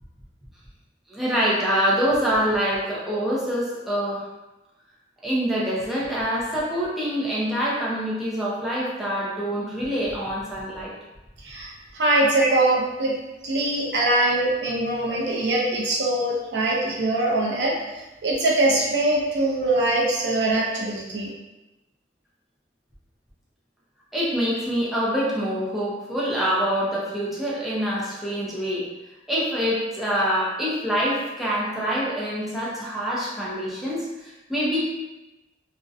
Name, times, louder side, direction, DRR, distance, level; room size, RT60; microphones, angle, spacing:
voice 1, 1.1-4.3 5.2-10.9 12.4-12.5 24.1-28.9 29.3-34.8, equal, ahead, -7 dB, 0.5 m, -25 dB
voice 2, 11.4-13.1 13.4-17.7 18.2-21.3, right 2 dB, 65° right, -3 dB, 0.5 m, -22 dB
2.4 x 2.1 x 2.5 m, 1.0 s
head